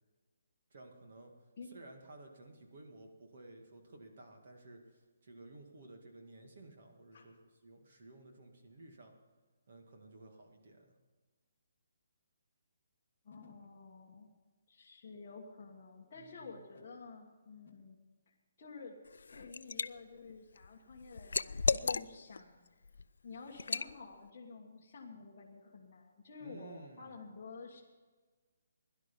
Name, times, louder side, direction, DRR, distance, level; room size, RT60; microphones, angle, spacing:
voice 1, 0.7-1.3 1.7-7.4 7.6-9.1 9.7-11.0 16.1-16.6 26.4-27.2, right 2 dB, 40° right, 3 dB, 2.0 m, -54 dB
voice 2, 13.2-14.3 14.7-18.0 18.3-19.0 19.3-22.8 23.2-27.8, left 4 dB, 25° left, -7 dB, 1.5 m, -51 dB
Liquid, 19.1-19.9 20.3-22.4 22.8-23.0 23.6-23.9, left 4 dB, 75° left, 0.4 m, -34 dB
17.0 x 11.5 x 5.3 m, 1.3 s
hypercardioid pair, 180°, 0 cm